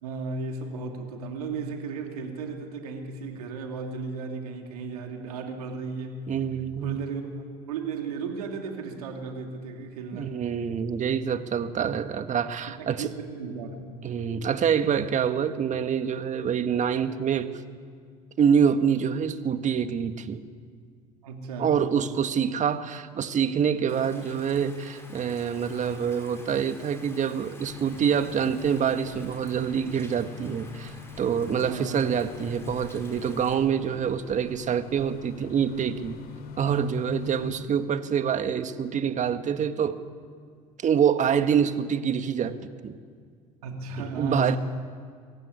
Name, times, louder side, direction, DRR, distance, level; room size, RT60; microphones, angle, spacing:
voice 1, 0.0-6.3 6.8-7.2 7.7-10.3 12.8-13.8 21.2-21.8 24.1-24.4 31.7-32.1 36.6-36.8 43.6-44.6, right 4 dB, 90° right, 3 dB, 2.7 m, -35 dB
voice 2, 6.3-7.0 10.1-13.1 14.0-17.5 18.4-20.4 21.6-36.2 36.6-40.0 40.8-42.6 42.8-43.0 44.0-44.6, right 7 dB, 40° right, 9 dB, 1.6 m, -26 dB
Rain, 23.9-33.5, left 1 dB, 15° left, 5.6 m, -50 dB
sound 1, 27.6-37.6, left 6 dB, 55° left, 3.7 m, -45 dB
23.0 x 15.0 x 9.8 m, 2.1 s
hypercardioid pair, 80°, 19 cm